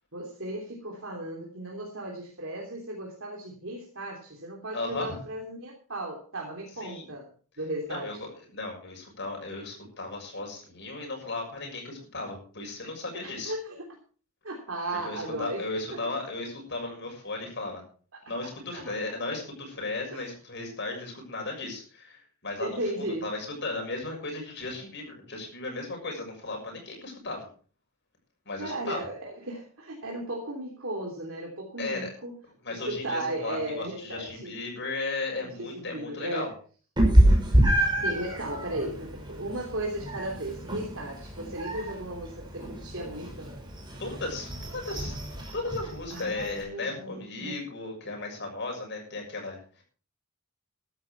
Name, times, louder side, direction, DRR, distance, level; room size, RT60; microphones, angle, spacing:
voice 1, 0.1-7.3 7.6-8.1 13.2-13.8 14.4-15.7 18.1-18.2 18.7-18.9 20.1-20.3 22.6-23.3 28.6-32.3 32.7-34.6 35.6-36.5 38.0-43.5 46.1-47.6, right 1 dB, 65° right, -1 dB, 3.1 m, -35 dB
voice 2, 4.7-5.2 6.8-7.1 7.9-13.5 15.0-17.8 18.3-27.5 28.4-29.0 31.8-32.1 32.6-36.5 44.0-45.2 45.5-49.8, left 2 dB, 50° left, 1 dB, 6.9 m, -36 dB
Meow, 37.0-46.6, right 1 dB, 20° right, 5.8 m, -27 dB
14.5 x 12.0 x 4.5 m, 0.41 s
head